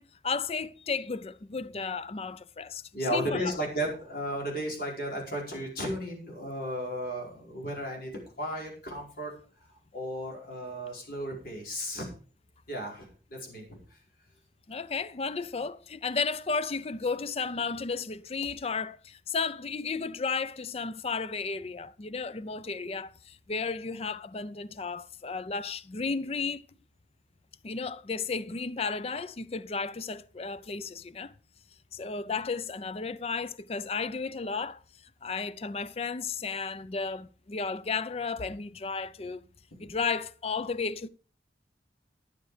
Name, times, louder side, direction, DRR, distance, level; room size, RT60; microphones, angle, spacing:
voice 1, 0.0-2.8 3.1-3.5 14.7-26.6 27.6-31.3 31.9-34.8 35.2-39.4 39.8-41.1, left 4 dB, 35° left, 0.4 m, -33 dB
voice 2, 2.9-8.1 8.4-9.3 9.9-12.1 12.7-14.0 39.8-39.9, equal, 55° left, 4.8 m, -34 dB
12.0 x 8.8 x 4.9 m
head